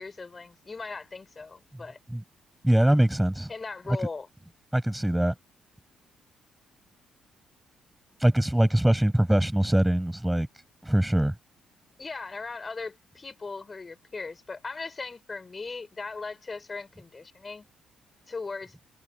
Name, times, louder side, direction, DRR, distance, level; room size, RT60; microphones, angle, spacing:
voice 1, 0.0-2.0 3.5-4.3 12.0-17.7 18.3-18.8, left 4 dB, 30° left, 6.1 m, -38 dB
voice 2, 2.6-3.5 4.7-5.3 8.2-10.5 10.8-11.4, right 1 dB, 5° right, 7.9 m, -22 dB
cardioid pair, 90°, 0 cm